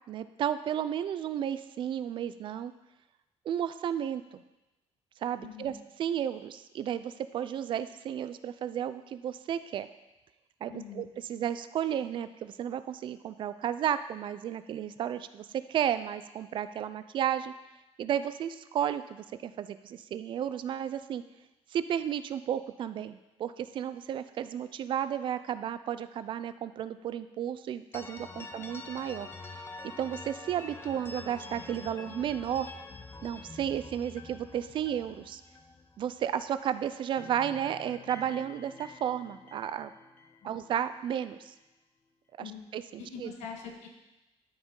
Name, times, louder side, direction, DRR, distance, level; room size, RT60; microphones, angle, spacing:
voice 1, 0.1-2.7 3.5-4.4 5.2-5.7 6.0-9.9 10.6-17.5 18.0-21.2 21.7-29.6 30.0-32.7 33.2-35.4 36.0-39.9 40.4-41.5 42.4-43.3, right 9 dB, 45° right, 12 dB, 0.4 m, -33 dB
voice 2, 5.4-5.7 10.7-11.1 28.3-28.4 40.4-40.5 42.4-42.6 43.0-43.9, left 6 dB, 80° left, 2 dB, 1.5 m, -43 dB
sound 1, 27.9-36.7 36.9-41.1, left 3 dB, 20° left, 0.5 m, -47 dB
12.5 x 5.1 x 3.8 m, 1.0 s
cardioid pair, 160°, 12 cm